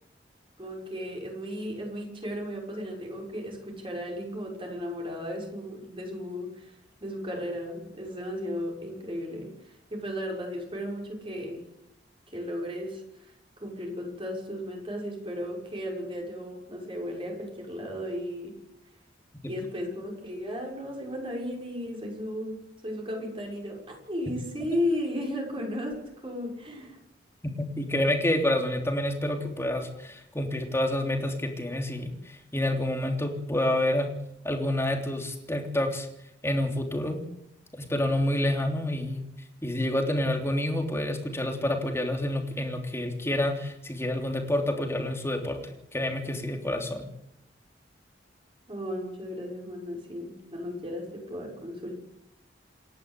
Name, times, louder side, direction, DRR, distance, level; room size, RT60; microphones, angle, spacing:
voice 1, 0.6-6.7 7.0-11.6 12.3-13.3 13.6-18.5 19.4-23.8 24.1-27.0 48.7-51.9, equal, 30° right, 0 dB, 6.2 m, -35 dB
voice 2, 27.4-34.1 34.4-36.1 36.4-37.2 37.7-39.2 39.6-47.1, left 1 dB, 15° left, 4 dB, 3.3 m, -28 dB
28.0 x 11.5 x 8.5 m, 0.78 s
head